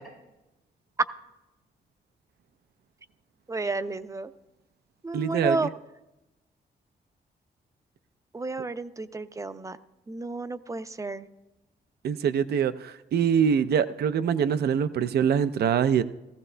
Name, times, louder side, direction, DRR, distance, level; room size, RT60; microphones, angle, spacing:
voice 1, 3.5-4.3 5.0-5.7 8.3-9.8 10.1-11.3, right 3 dB, 20° right, 12 dB, 0.5 m, -31 dB
voice 2, 5.1-5.7 12.0-16.0, right 8 dB, 75° right, 12 dB, 0.5 m, -24 dB
17.5 x 15.0 x 2.2 m, 1.0 s
cardioid pair, 105°, 17 cm